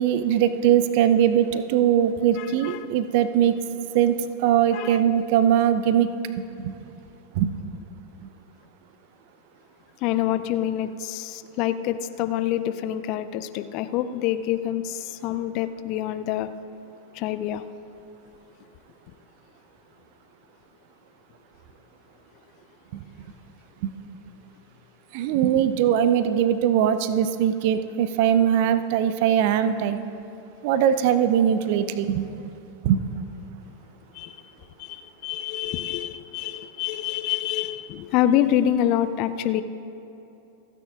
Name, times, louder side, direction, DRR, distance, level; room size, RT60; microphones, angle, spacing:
voice 1, 0.0-3.6 3.9-6.1 6.6-6.7 7.3-7.5 22.9-23.0 23.8-23.9 25.1-30.0 30.6-32.3 32.8-33.0, right 9 dB, 50° right, 0.6 m, -21 dB
voice 2, 2.4-2.9 4.7-5.0 10.0-16.5 17.1-17.6 34.1-34.4 34.8-39.6, left 11 dB, 40° left, 0.5 m, -26 dB
28.0 x 9.4 x 2.5 m
figure-of-eight pair, 90°, 0 cm